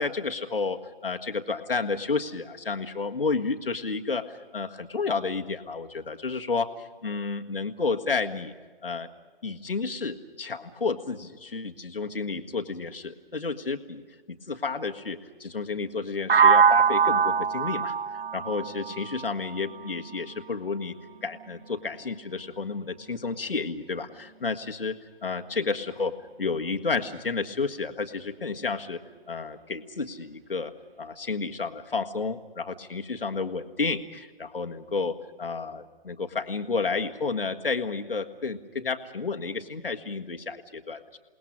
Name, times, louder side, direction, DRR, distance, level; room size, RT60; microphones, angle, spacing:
voice 1, 0.0-8.5 8.8-9.1 9.4-14.0 14.3-18.0 18.3-20.9 21.2-26.1 26.4-29.0 29.3-30.7 31.0-41.0, left 4 dB, 65° left, 5 dB, 1.7 m, -31 dB
sound 1, 16.3-20.2, right 6 dB, 70° right, 0.6 m, -22 dB
29.0 x 19.5 x 6.2 m, 1.4 s
figure-of-eight pair, 150°, 30 cm